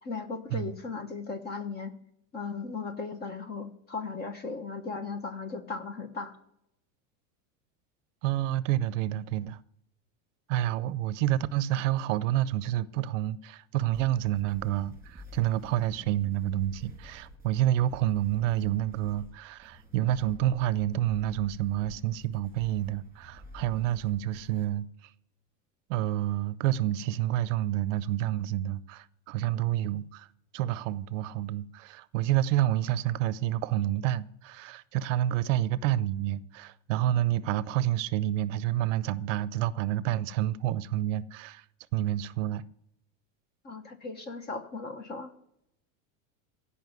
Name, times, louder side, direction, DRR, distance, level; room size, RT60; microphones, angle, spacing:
voice 1, 0.0-1.9 2.3-6.4 43.6-45.3, left 4 dB, 25° left, 1.2 m, -37 dB
voice 2, 8.2-9.6 10.5-25.1 25.9-30.3 30.5-41.7 41.9-42.6, right 13 dB, 65° right, 0.7 m, -29 dB
sound 1, 13.9-24.7, equal, 5° right, 2.4 m, -50 dB
16.0 x 5.7 x 9.4 m
supercardioid pair, 160°, 40 cm